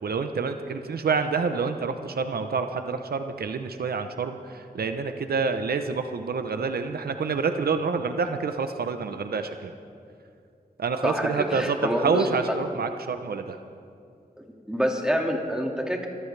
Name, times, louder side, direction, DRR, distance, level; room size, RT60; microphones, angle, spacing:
voice 1, 0.0-9.7 10.8-13.6, right 5 dB, 75° right, 8 dB, 0.7 m, -28 dB
voice 2, 11.0-12.3 14.4-16.1, equal, 5° right, 1 dB, 2.0 m, -27 dB
23.5 x 14.5 x 3.3 m, 2.4 s
wide cardioid pair, 75°, 16 cm